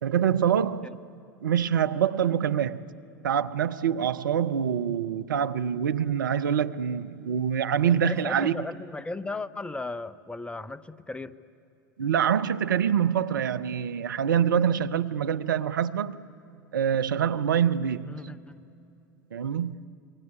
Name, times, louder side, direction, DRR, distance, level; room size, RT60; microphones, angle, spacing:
voice 1, 0.0-0.9 1.4-2.9 3.2-8.6 12.0-16.2 16.7-18.2 19.3-19.8, right 8 dB, 75° right, 0.7 m, -25 dB
voice 2, 7.8-11.4 18.0-18.6, left 3 dB, 10° left, 0.7 m, -36 dB
26.5 x 22.5 x 9.9 m
figure-of-eight pair, 80°, 11 cm